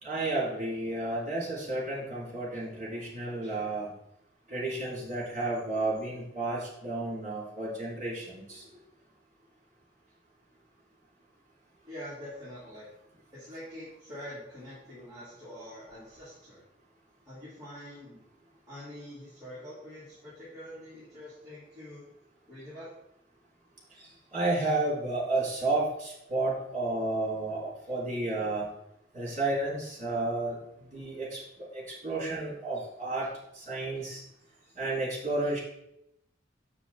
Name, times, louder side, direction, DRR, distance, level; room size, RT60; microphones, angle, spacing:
voice 1, 0.0-3.9 4.5-8.7 24.3-28.7 29.1-30.6 30.9-31.4 31.7-33.3 33.5-34.2 34.8-35.6, right 2 dB, 40° right, -4 dB, 3.3 m, -31 dB
voice 2, 11.9-12.9 13.3-16.6 17.2-18.2 18.7-22.1 22.5-22.9, left 1 dB, 20° right, -11 dB, 2.9 m, -45 dB
6.9 x 6.1 x 4.2 m, 0.80 s
head